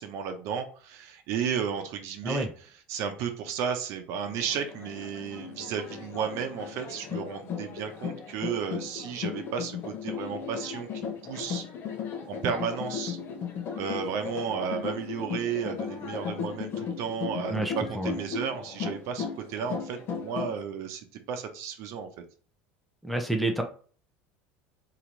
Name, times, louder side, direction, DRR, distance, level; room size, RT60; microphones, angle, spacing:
voice 1, 0.0-11.7 12.3-13.2 13.7-22.1, right 7 dB, 60° right, 5 dB, 0.8 m, -33 dB
sound 1, 4.2-20.6, left 6 dB, 45° left, 1.0 m, -36 dB
voice 2, 17.5-18.2 23.0-23.6, right 1 dB, ahead, 3 dB, 0.8 m, -29 dB
3.0 x 3.0 x 4.0 m, 0.42 s
supercardioid pair, 95°, 6 cm